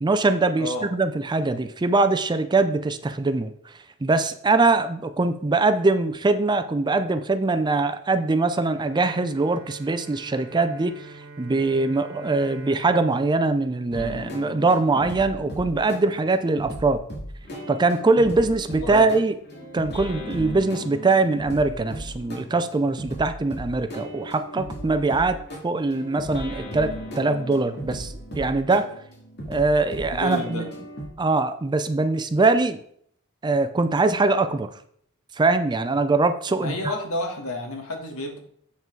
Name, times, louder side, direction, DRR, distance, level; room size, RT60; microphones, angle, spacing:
voice 1, 0.0-3.7 4.0-17.0 17.7-19.3 19.7-25.4 25.6-28.9 29.5-30.7 31.2-32.8 33.4-34.7 35.4-36.9, right 3 dB, 20° right, 10 dB, 0.4 m, -22 dB
Bowed string instrument, 8.7-14.9, right 2 dB, 80° right, 1.5 m, -45 dB
sound 1, 13.9-31.1, equal, 50° left, 2.4 m, -37 dB
voice 2, 30.1-30.7 36.6-38.4, left 1 dB, 75° left, 3 dB, 1.8 m, -30 dB
7.5 x 5.7 x 4.5 m, 0.66 s
head